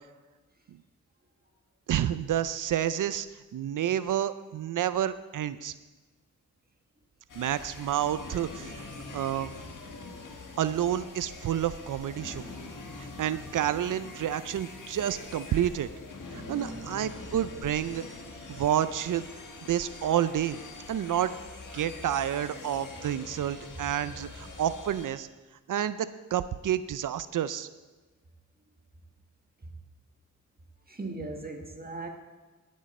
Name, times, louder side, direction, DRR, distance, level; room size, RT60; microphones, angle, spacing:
voice 1, 1.9-3.3 3.5-5.7 7.3-8.8 9.1-9.5 10.6-12.4 13.0-15.9 16.3-18.0 18.5-19.3 19.7-20.6 20.9-21.3 21.7-25.3 25.7-27.7, right 10 dB, 75° right, 14 dB, 0.5 m, -29 dB
sound 1, 7.3-25.1, left 3 dB, 75° left, 1.5 m, -44 dB
voice 2, 12.2-12.6 16.3-17.3 22.9-23.1 30.9-32.1, right 2 dB, 30° right, 3 dB, 1.6 m, -40 dB
16.0 x 7.5 x 4.2 m, 1.2 s
cardioid pair, 75°, 32 cm